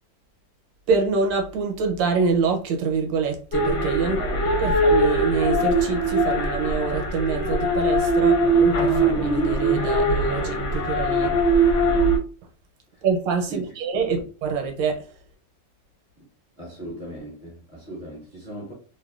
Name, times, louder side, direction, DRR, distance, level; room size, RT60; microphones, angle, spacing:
voice 1, 0.9-11.4 13.0-15.1, right 4 dB, 80° right, 1.3 m, -26 dB
sound 1, 3.5-12.2, right 1 dB, 65° left, 1.2 m, -21 dB
voice 2, 4.0-4.7 12.9-13.0 13.5-13.7 14.1-14.2 16.6-18.7, right 1 dB, 35° left, 0.8 m, -38 dB
3.1 x 2.2 x 2.3 m
omnidirectional pair, 2.0 m